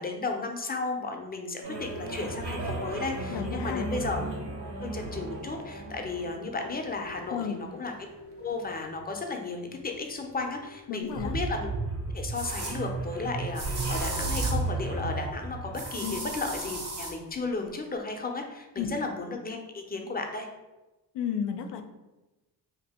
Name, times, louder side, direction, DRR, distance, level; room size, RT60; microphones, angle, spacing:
voice 1, 0.0-4.2 4.8-7.9 8.4-11.7 12.1-20.5, left 3 dB, 20° left, 3 dB, 0.5 m, -34 dB
sound 1, 1.6-17.0, right 2 dB, 90° right, 1.1 m, -36 dB
sound 2, 2.2-8.7, right 3 dB, 35° right, 0.6 m, -48 dB
voice 2, 3.3-3.9 7.3-7.6 10.9-11.3 16.0-16.1 18.8-18.9 21.1-21.8, left 8 dB, 85° left, 7 dB, 0.5 m, -32 dB
sound 3, 11.2-11.3 12.3-12.8 13.5-14.7 15.7-17.1, right 2 dB, 70° right, 1.3 m, -33 dB
2.8 x 2.6 x 4.2 m, 1.1 s
cardioid pair, 90°, 41 cm